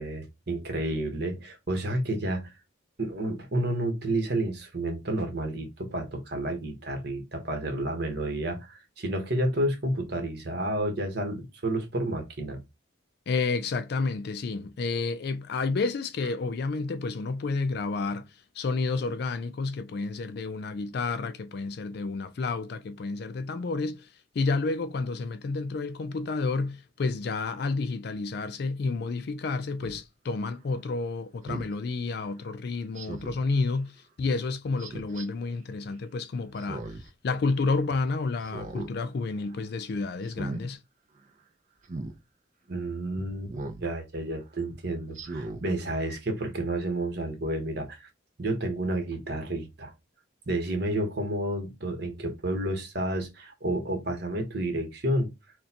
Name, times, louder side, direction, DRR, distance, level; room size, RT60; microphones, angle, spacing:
voice 1, 0.0-2.5 3.0-12.6 42.7-43.5 43.8-48.1 48.4-49.9 50.5-55.3, right 1 dB, 55° right, 1.1 m, -30 dB
voice 2, 13.3-18.2 18.6-24.1 24.4-33.9 34.2-36.8 37.2-40.8, left 3 dB, 55° left, 0.4 m, -30 dB
Speech synthesizer, 29.8-30.0 31.4-31.7 32.9-33.4 34.8-35.3 36.6-37.1 37.5-37.6 38.4-38.9 39.3-39.6 40.2-40.6 41.8-42.1 43.5-43.8 44.3-44.4 45.1-45.6 46.1-46.2, right 2 dB, 40° right, 0.5 m, -37 dB
6.2 x 2.2 x 2.8 m
head